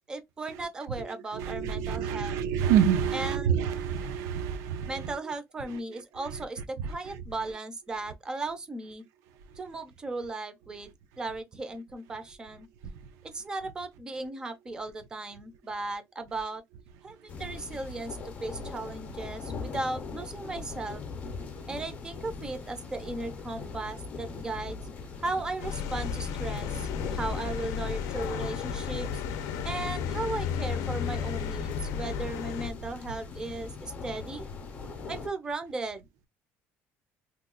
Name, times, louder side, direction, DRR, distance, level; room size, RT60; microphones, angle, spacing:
voice 1, 0.1-2.4 3.1-3.6 4.9-9.0 9.6-10.9 11.2-12.7 13.3-16.6 17.0-21.0 21.7-24.8 25.2-29.2 29.6-34.5 35.1-36.1, right 2 dB, 15° right, 0.5 m, -36 dB
voice 2, 1.3-4.9, right 8 dB, 85° right, 0.6 m, -27 dB
sound 1, 17.3-35.3, left 5 dB, 30° left, 0.6 m, -40 dB
sound 2, 25.6-32.7, left 7 dB, 80° left, 0.5 m, -33 dB
2.9 x 2.2 x 3.7 m
cardioid pair, 180°, 5 cm